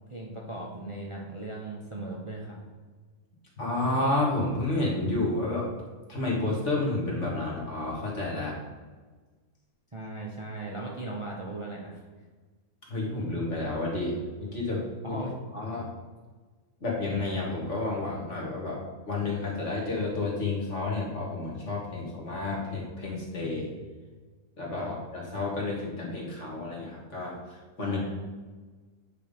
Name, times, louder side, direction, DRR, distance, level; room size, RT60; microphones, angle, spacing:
voice 1, 0.1-2.6 9.9-12.0 15.0-15.4 23.5-23.7 24.8-24.9 27.8-28.1, right 2 dB, 25° right, -2 dB, 0.8 m, -38 dB
voice 2, 3.6-5.7 6.1-8.6 12.9-15.2 15.5-15.9 16.8-23.7 24.6-28.0, left 2 dB, 55° left, -3 dB, 2.0 m, -30 dB
9.1 x 3.6 x 5.2 m, 1.4 s
omnidirectional pair, 1.5 m